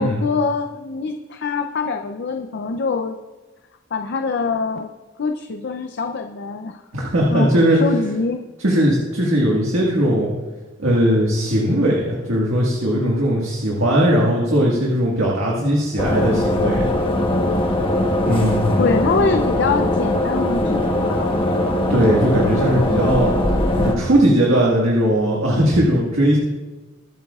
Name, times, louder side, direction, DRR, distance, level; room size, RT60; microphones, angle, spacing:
voice 1, 0.0-3.2 3.9-4.9 5.2-6.8 7.3-7.5 7.8-8.4 18.8-21.8, left 4 dB, 60° left, 5 dB, 0.5 m, -24 dB
voice 2, 6.9-7.8 8.6-10.3 10.8-16.9 18.2-18.8 21.9-23.3 23.8-26.4, equal, 80° right, -3 dB, 1.8 m, -18 dB
sound 1, 16.0-23.9, left 1 dB, 25° left, 1.1 m, -20 dB
22.5 x 8.1 x 2.4 m, 1.2 s
head